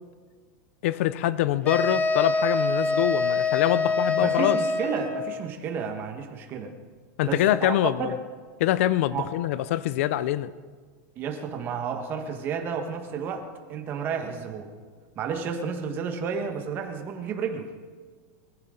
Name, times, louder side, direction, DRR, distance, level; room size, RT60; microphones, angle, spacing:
voice 1, 0.8-4.6 7.2-8.1 8.6-10.5, left 13 dB, 50° left, 17 dB, 0.6 m, -24 dB
sound 1, 1.6-5.3, left 3 dB, 15° left, 1.0 m, -25 dB
voice 2, 4.2-6.7 7.2-8.2 9.1-9.3 11.1-14.7 15.1-17.7, right 6 dB, 20° right, 5 dB, 1.4 m, -31 dB
22.0 x 14.5 x 3.8 m, 1.6 s
supercardioid pair, 175°, 9 cm